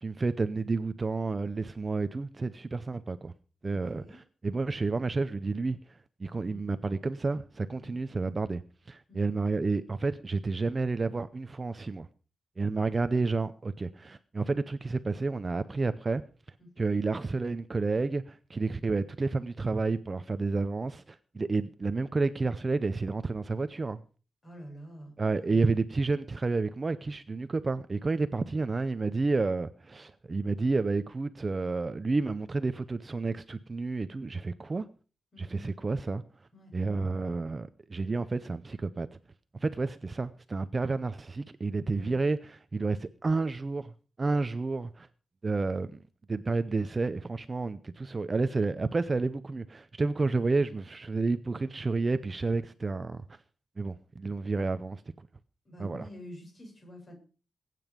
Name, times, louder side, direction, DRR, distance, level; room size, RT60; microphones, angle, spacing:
voice 1, 0.0-3.3 3.6-8.6 8.9-12.1 12.6-16.2 16.8-24.0 25.2-34.9 35.4-36.2 36.7-39.1 39.6-43.9 44.2-45.1 45.4-46.0 46.3-53.2 53.8-55.0 55.8-56.0, right 3 dB, 25° right, 0.6 m, -30 dB
voice 2, 3.6-4.2 6.4-6.6 7.8-8.0 9.1-9.3 12.8-12.9 16.6-16.7 24.4-25.8 35.3-35.7 36.5-36.7 41.9-42.2 50.3-50.4 55.6-57.1, equal, 30° left, 8.0 m, -48 dB
21.5 x 9.3 x 5.1 m
wide cardioid pair, 165°, 0 cm